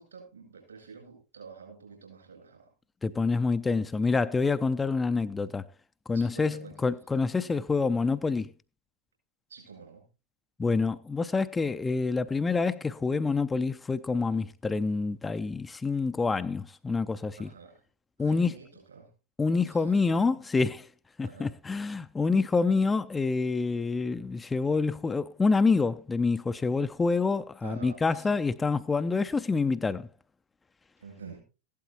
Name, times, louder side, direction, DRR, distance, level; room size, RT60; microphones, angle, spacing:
voice 1, 0.0-2.7 6.1-6.7 9.5-10.0 17.4-17.8 18.2-19.1 19.6-20.2 21.2-21.5 27.6-28.3 31.0-31.4, right 5 dB, 70° right, 7.5 m, -48 dB
voice 2, 3.0-5.6 6.1-8.5 10.6-17.5 18.2-18.5 19.4-20.9 21.2-30.1, left 4 dB, 15° left, 0.5 m, -27 dB
15.5 x 12.0 x 2.8 m
figure-of-eight pair, 90°, 0 cm